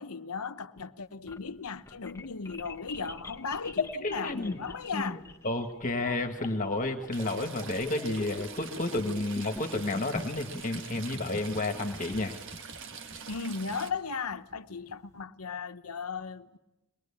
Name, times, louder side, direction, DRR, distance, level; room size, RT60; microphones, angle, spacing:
voice 1, 0.0-5.2 13.3-16.6, left 5 dB, 75° left, 0.9 m, -36 dB
sound 1, 1.0-15.1, left 2 dB, 15° left, 0.9 m, -45 dB
voice 2, 4.0-4.6 4.9-5.2 5.4-12.3, left 2 dB, 35° left, 1.6 m, -31 dB
Stream / Trickle dribble, 7.1-13.9, right 5 dB, 55° right, 1.3 m, -44 dB
23.0 x 20.5 x 8.7 m
head